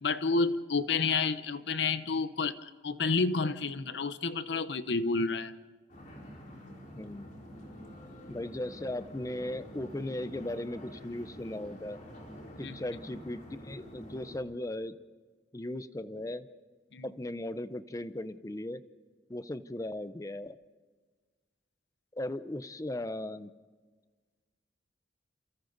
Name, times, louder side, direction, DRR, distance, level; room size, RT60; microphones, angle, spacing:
voice 1, 0.0-5.5 12.6-12.8 16.9-17.1, left 4 dB, 60° left, 13 dB, 0.8 m, -30 dB
sound 1, 5.9-14.4, equal, 45° left, 4.4 m, -48 dB
voice 2, 6.9-7.3 8.3-12.0 12.6-15.0 15.5-16.5 17.0-18.8 19.3-20.6 22.1-23.5, left 1 dB, 15° left, 13 dB, 0.6 m, -37 dB
29.0 x 27.5 x 4.0 m, 1.4 s
head